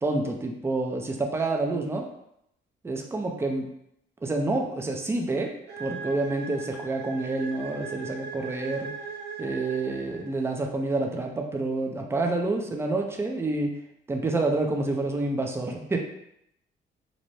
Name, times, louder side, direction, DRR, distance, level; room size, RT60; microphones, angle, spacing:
voice 1, 0.0-2.1 2.8-3.7 4.2-9.0 9.4-13.8 14.1-16.0, right 2 dB, 15° right, 2 dB, 0.4 m, -28 dB
sound 1, 5.7-10.5, right 5 dB, 60° right, 0.8 m, -39 dB
2.6 x 2.1 x 3.1 m, 0.76 s
cardioid pair, 90°, 20 cm